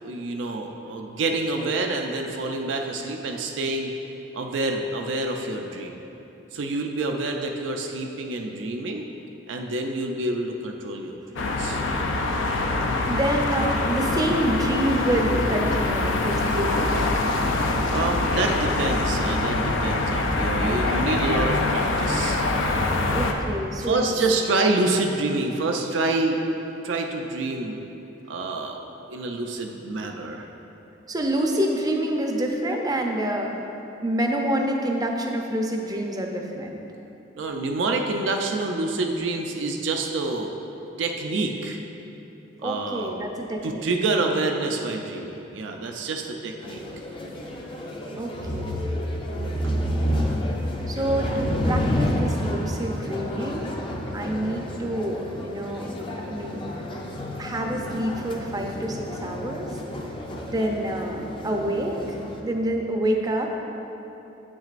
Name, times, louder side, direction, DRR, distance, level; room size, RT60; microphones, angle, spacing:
voice 1, 0.0-3.9 4.3-6.0 6.5-9.0 9.5-11.8 17.9-22.4 23.8-26.4 26.8-27.8 28.3-28.8 29.1-30.5 37.4-40.5 41.0-41.8 42.6-43.1 43.6-46.8, right 2 dB, 70° right, 2 dB, 0.4 m, -27 dB
sound 1, 11.4-23.3, left 2 dB, 80° left, 0.5 m, -24 dB
voice 2, 13.0-17.0 20.7-21.1 23.1-24.1 31.1-33.5 34.0-36.8 42.6-44.2 48.1-48.8 50.9-53.9 54.1-55.9 56.3-56.9 57.4-59.8 60.4-63.5, right 1 dB, 20° right, 2 dB, 0.5 m, -27 dB
sound 2, 46.6-62.4, equal, 25° left, 0.5 m, -30 dB
8.0 x 6.1 x 2.5 m, 3.0 s
head